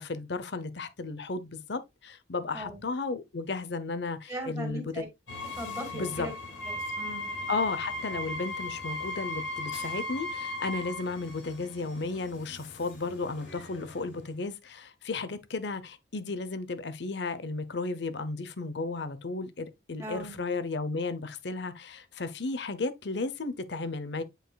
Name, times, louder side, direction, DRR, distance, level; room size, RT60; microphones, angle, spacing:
voice 1, 0.0-5.1 5.9-6.3 7.5-24.2, left 3 dB, 60° left, 0.8 m, -34 dB
voice 2, 4.3-5.1 5.6-6.3 6.6-7.3 20.0-20.4, equal, 15° right, 2.2 m, -39 dB
Train, 5.3-14.5, left 3 dB, 80° left, 3.1 m, -45 dB
Wind instrument woodwind instrument, 6.5-11.0, left 1 dB, 5° left, 1.5 m, -35 dB
9.0 x 4.9 x 2.3 m
head